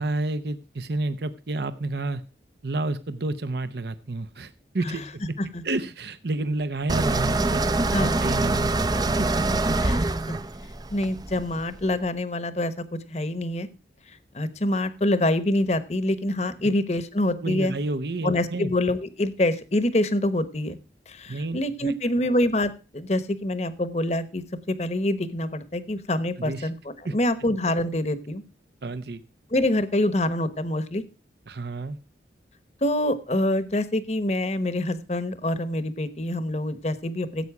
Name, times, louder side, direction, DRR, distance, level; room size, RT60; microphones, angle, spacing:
voice 1, 0.0-2.2 2.6-5.1 5.6-7.6 7.9-8.8 9.2-9.8 17.4-18.7 21.3-21.9 22.2-22.4 26.4-26.7 27.0-27.1 28.8-29.2 31.5-32.0, right 2 dB, 70° right, 11 dB, 0.7 m, -30 dB
sound 1, 6.9-11.8, right 2 dB, 20° right, 0.5 m, -24 dB
voice 2, 10.9-13.7 14.3-17.7 18.2-20.8 21.1-28.4 29.5-31.0 32.8-37.5, left 1 dB, 40° left, 14 dB, 1.1 m, -26 dB
15.5 x 8.4 x 4.8 m, 0.32 s
head